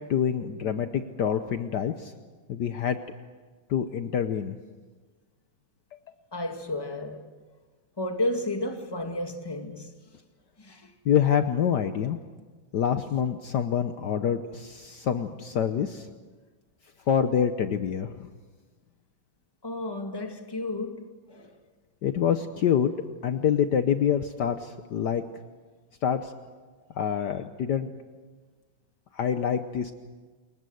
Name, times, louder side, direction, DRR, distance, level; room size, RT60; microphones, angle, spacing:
voice 1, 0.1-2.1 2.5-3.0 3.7-4.6 11.0-12.2 12.7-16.1 17.1-18.3 22.0-22.9 23.2-25.2 26.0-26.3 26.9-27.9 29.1-29.9, left 8 dB, 65° left, 1.4 m, -26 dB
voice 2, 6.3-7.3 8.0-9.9 10.6-10.9 19.6-21.6, left 1 dB, 10° left, 1.9 m, -32 dB
28.0 x 22.0 x 7.9 m
omnidirectional pair, 2.1 m